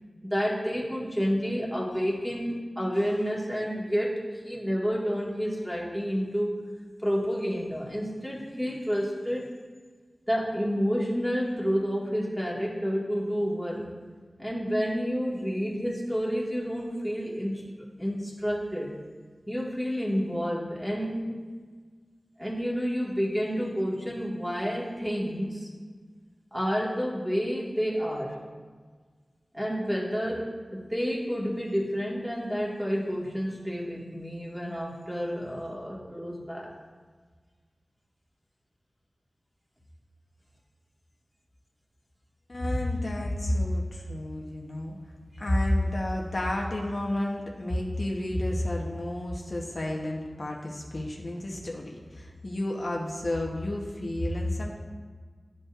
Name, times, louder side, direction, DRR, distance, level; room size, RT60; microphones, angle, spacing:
voice 1, 0.2-6.6 7.0-9.5 10.3-13.9 14.4-17.6 18.0-18.9 19.5-21.3 22.4-25.7 26.5-28.4 29.5-36.7, equal, 5° right, -5 dB, 1.7 m, -29 dB
voice 2, 42.5-44.9 45.4-54.8, left 1 dB, 60° left, -1 dB, 1.0 m, -30 dB
11.5 x 5.3 x 2.5 m, 1.5 s
wide cardioid pair, 60°, 0 cm